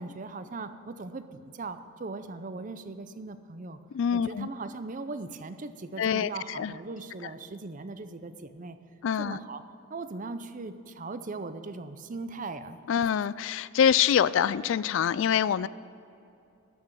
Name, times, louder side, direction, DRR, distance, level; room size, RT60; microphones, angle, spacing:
voice 1, 0.0-3.8 4.1-8.8 9.2-9.6 9.9-12.8, right 3 dB, 35° right, 11 dB, 0.6 m, -39 dB
voice 2, 3.9-4.5 6.0-6.7 9.0-9.4 12.9-15.7, left 8 dB, 60° left, 18 dB, 0.3 m, -25 dB
13.0 x 6.1 x 8.7 m, 2.6 s
head